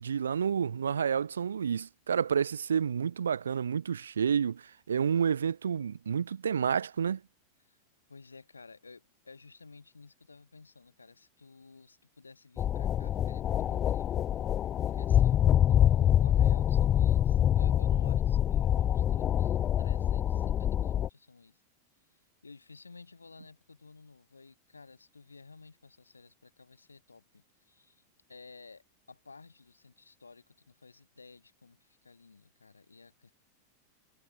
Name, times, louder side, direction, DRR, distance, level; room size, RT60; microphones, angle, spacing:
voice 1, 0.0-7.2, right 7 dB, 70° right, 0.6 m, -29 dB
voice 2, 8.1-14.2 14.5-21.6 22.1-28.0 28.3-33.3, left 4 dB, 80° left, 7.3 m, -54 dB
sound 1, 12.6-21.1, left 10 dB, 30° left, 0.5 m, -26 dB
figure-of-eight pair, 90°, 0 cm